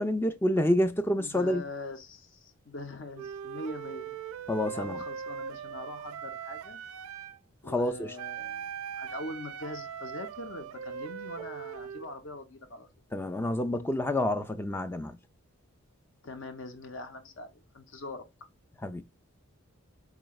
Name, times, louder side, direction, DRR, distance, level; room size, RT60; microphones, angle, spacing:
voice 1, 0.0-1.6 4.5-5.0 7.7-8.1 13.1-15.2 18.8-19.0, left 1 dB, 10° left, 0.3 m, -28 dB
voice 2, 1.2-4.2 4.7-6.8 7.6-12.9 16.2-18.2, left 2 dB, 55° left, 0.7 m, -42 dB
Wind instrument woodwind instrument, 3.1-7.4 8.2-12.1, right 7 dB, 75° right, 0.4 m, -40 dB
4.7 x 3.1 x 2.3 m
head